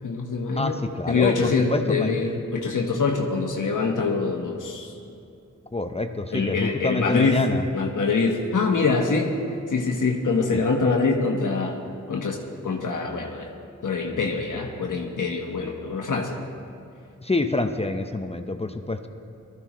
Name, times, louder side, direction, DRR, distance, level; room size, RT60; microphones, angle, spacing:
voice 1, 0.0-0.8 1.1-4.9 6.3-7.5 7.7-9.4 9.7-11.8 12.1-13.5 13.8-16.4, left 4 dB, 75° left, 1 dB, 1.3 m, -24 dB
voice 2, 0.6-2.2 5.7-7.7 10.5-10.6 17.2-19.1, left 2 dB, 20° left, 7 dB, 0.7 m, -27 dB
19.5 x 14.0 x 3.1 m, 2.6 s
cardioid pair, 50°, 31 cm